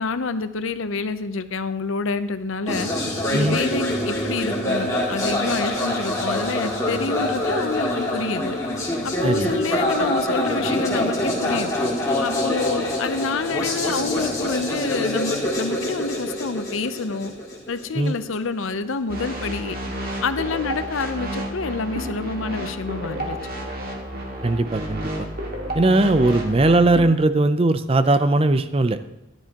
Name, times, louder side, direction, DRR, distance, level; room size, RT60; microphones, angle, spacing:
voice 1, 0.0-2.9 3.3-8.6 9.0-11.7 12.2-17.3 17.7-19.8 20.2-23.4, left 4 dB, 80° left, 11 dB, 0.7 m, -28 dB
sound 1, 2.7-18.5, left 1 dB, 15° left, 2.0 m, -25 dB
sound 2, 19.1-27.0, equal, 45° right, 2.0 m, -31 dB
voice 2, 24.4-25.1 25.7-29.0, right 2 dB, 30° right, 11 dB, 0.5 m, -19 dB
14.5 x 10.5 x 2.9 m, 0.92 s
head